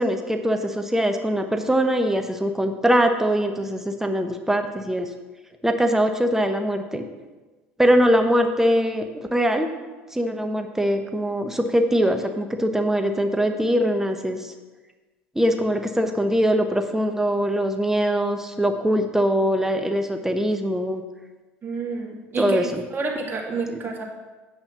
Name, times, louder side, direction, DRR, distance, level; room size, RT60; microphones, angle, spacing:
voice 1, 0.0-5.1 5.6-7.0 7.8-9.0 9.3-9.7 10.1-14.5 15.3-21.0 22.4-22.8, equal, 5° right, 5 dB, 1.1 m, -22 dB
voice 2, 21.6-24.0, right 4 dB, 35° right, -1 dB, 2.2 m, -29 dB
8.6 x 5.6 x 6.0 m, 1.2 s
hypercardioid pair, 70°, 7 cm